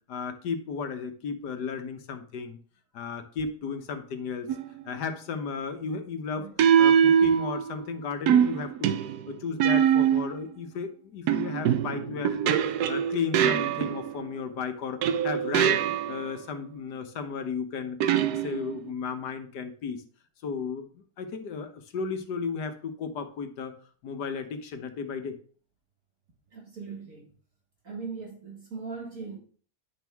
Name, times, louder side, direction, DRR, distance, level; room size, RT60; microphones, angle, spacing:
voice 1, 0.1-2.6 2.9-4.5 4.8-6.5 6.8-9.0 9.3-15.8 16.1-18.0 18.3-20.0 20.4-20.9 21.2-23.8 24.0-25.4, left 5 dB, 90° left, 1.6 m, -34 dB
sound 1, 4.5-4.8 6.6-7.8 8.3-10.4 11.3-14.3 15.0-16.3 18.0-18.9, right 8 dB, 75° right, 1.2 m, -23 dB
voice 2, 26.5-27.3 27.8-29.4, right 4 dB, 55° right, 2.0 m, -39 dB
10.0 x 6.1 x 3.5 m
omnidirectional pair, 1.7 m